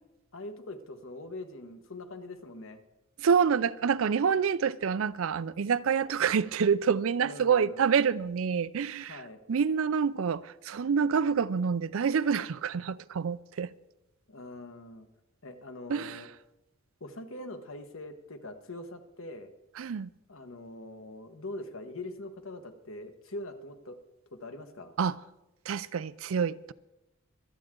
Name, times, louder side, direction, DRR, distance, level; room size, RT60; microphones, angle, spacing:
voice 1, 0.3-2.8 7.2-7.8 9.1-9.4 14.3-15.1 15.4-16.3 17.0-19.5 20.3-24.0 24.3-24.9, left 2 dB, 65° left, 1.3 m, -43 dB
voice 2, 3.2-9.2 9.5-13.7 15.9-16.3 19.8-20.1 25.0-25.2 25.7-26.7, right 6 dB, 70° right, 0.4 m, -27 dB
25.0 x 8.9 x 3.8 m
head